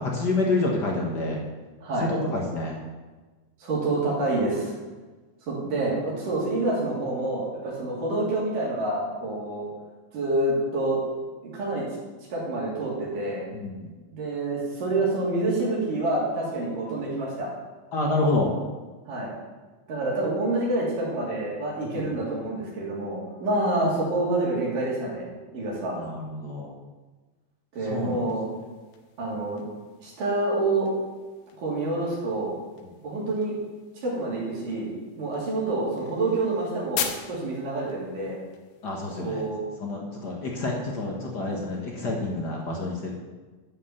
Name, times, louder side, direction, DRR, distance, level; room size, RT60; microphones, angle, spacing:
voice 1, 0.0-1.4 2.1-2.8 13.5-13.9 17.9-18.5 21.9-22.1 25.9-26.7 27.8-28.2 29.2-29.3 38.8-39.4 39.8-43.1, left 2 dB, 60° left, -1 dB, 1.1 m, -28 dB
voice 2, 1.8-2.1 3.6-4.7 5.5-9.7 10.1-11.0 11.5-11.8 12.3-13.5 14.1-17.5 19.1-19.3 19.9-25.3 25.5-26.0 27.7-28.5 29.2-29.7 30.0-30.9 31.6-32.5 33.0-33.5 34.0-34.9 35.2-38.4 39.2-39.6, right 2 dB, 70° right, -5 dB, 4.6 m, -27 dB
sound 1, 27.7-39.5, left 8 dB, 80° left, 2.7 m, -41 dB
12.0 x 5.7 x 7.2 m, 1.3 s
omnidirectional pair, 4.0 m